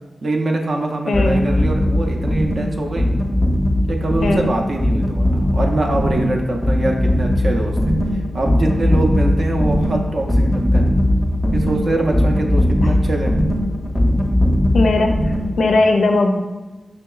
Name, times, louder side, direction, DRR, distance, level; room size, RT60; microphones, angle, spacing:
voice 1, 0.2-3.1 3.9-7.9 8.3-10.8 11.5-13.3, right 2 dB, 55° right, 1 dB, 0.4 m, -23 dB
voice 2, 1.1-1.4 4.2-4.6 12.8-12.9 14.7-16.3, left 3 dB, 80° left, 4 dB, 0.4 m, -18 dB
sound 1, 1.1-15.8, left 1 dB, 15° left, 0.5 m, -19 dB
5.2 x 2.8 x 2.3 m, 1.2 s
wide cardioid pair, 110°, 0 cm